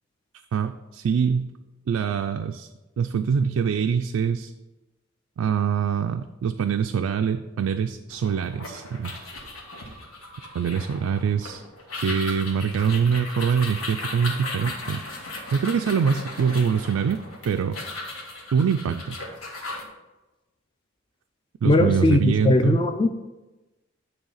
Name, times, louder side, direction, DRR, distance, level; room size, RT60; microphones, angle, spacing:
voice 1, 0.5-1.5 1.9-2.7 3.0-4.5 5.4-9.1 10.5-11.6 12.0-15.0 15.5-17.2 17.4-17.8 18.5-19.1 21.6-22.8, right 6 dB, 85° right, 7 dB, 0.3 m, -24 dB
sound 1, 8.1-19.8, left 2 dB, 85° left, 1.4 m, -37 dB
voice 2, 21.6-23.1, left 2 dB, 25° left, 8 dB, 0.3 m, -19 dB
8.9 x 3.2 x 5.6 m, 1.1 s
head